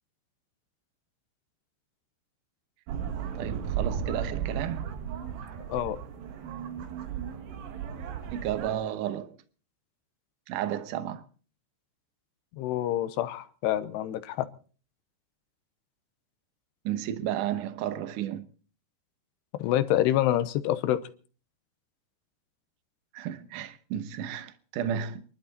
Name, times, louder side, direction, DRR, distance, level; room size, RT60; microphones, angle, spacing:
sound 1, 2.9-8.8, right 8 dB, 85° right, 3.8 m, -35 dB
voice 1, 3.4-4.9 8.3-9.4 10.5-11.2 16.8-18.5 23.1-25.2, right 10 dB, 70° right, 2.2 m, -32 dB
voice 2, 12.5-14.5 19.5-21.0, left 13 dB, 85° left, 3.1 m, -27 dB
27.0 x 11.5 x 4.2 m
omnidirectional pair, 4.7 m